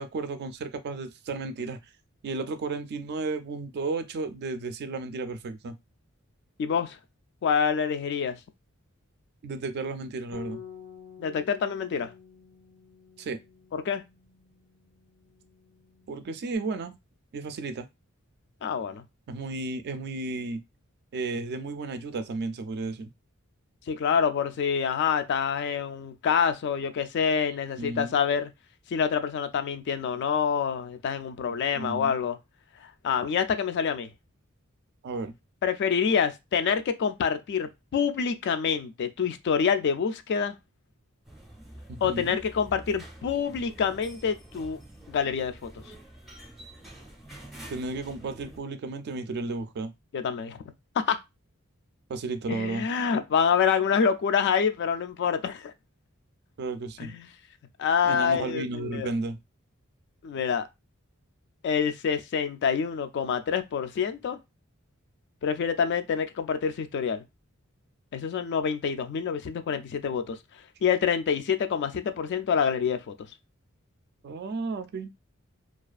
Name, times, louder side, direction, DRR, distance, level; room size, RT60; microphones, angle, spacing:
voice 1, 0.0-1.8 2.2-5.8 9.4-10.6 13.2-13.4 16.1-16.9 17.3-17.9 19.3-20.6 21.1-23.1 27.8-28.2 31.8-32.2 35.0-35.3 41.9-42.4 47.7-49.9 52.1-52.9 56.6-57.1 58.0-59.4 74.2-75.1, right 3 dB, 50° right, 0.3 m, -33 dB
voice 2, 6.6-7.0 7.4-8.4 11.2-12.1 13.7-14.0 18.6-19.0 23.9-28.5 28.9-32.4 33.0-34.1 35.6-40.6 42.0-44.8 45.1-45.7 50.1-50.6 51.0-51.2 52.5-55.7 57.0-57.3 57.8-59.1 60.2-60.7 61.6-64.4 65.4-67.2 68.1-70.4 70.8-73.1, left 6 dB, 55° left, 0.3 m, -26 dB
Bass guitar, 10.3-16.6, left 8 dB, 90° left, 0.8 m, -49 dB
sound 1, 41.2-48.6, right 1 dB, ahead, 0.5 m, -47 dB
2.3 x 2.3 x 2.4 m
head